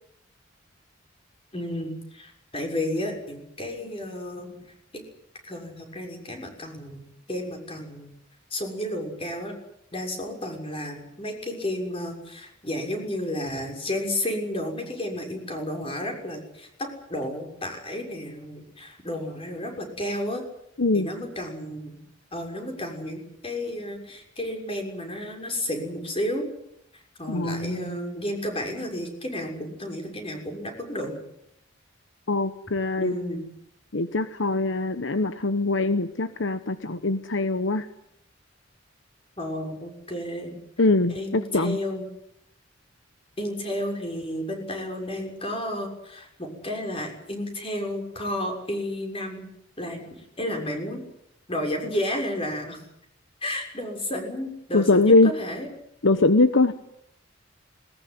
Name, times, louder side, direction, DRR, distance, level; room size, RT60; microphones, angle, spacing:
voice 1, 1.5-4.5 4.9-5.0 5.4-8.1 8.5-9.5 9.9-20.4 20.9-22.0 22.3-26.4 27.2-31.2 33.0-33.4 39.4-40.6 41.1-42.1 43.4-49.5 49.8-50.0 50.4-51.0 51.5-52.8 53.4-55.7, left 1 dB, 30° left, 3 dB, 6.6 m, -32 dB
voice 2, 27.3-28.0 32.3-33.1 33.9-37.9 40.8-41.8 54.7-55.3 56.0-56.7, left 2 dB, 70° left, 11 dB, 1.0 m, -22 dB
21.0 x 20.5 x 9.6 m, 0.75 s
head